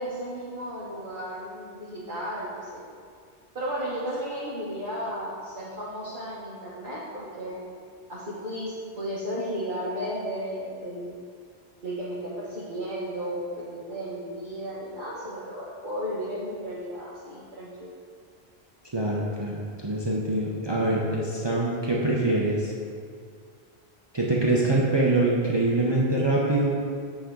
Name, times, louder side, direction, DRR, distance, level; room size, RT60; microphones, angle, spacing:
voice 1, 0.0-2.8 3.5-7.6 8.1-11.2 11.8-17.9, equal, 50° right, -8 dB, 1.5 m, -34 dB
voice 2, 18.9-22.7 24.1-26.7, right 2 dB, 25° right, -4 dB, 0.9 m, -24 dB
8.7 x 7.1 x 3.8 m, 2.1 s
omnidirectional pair, 1.1 m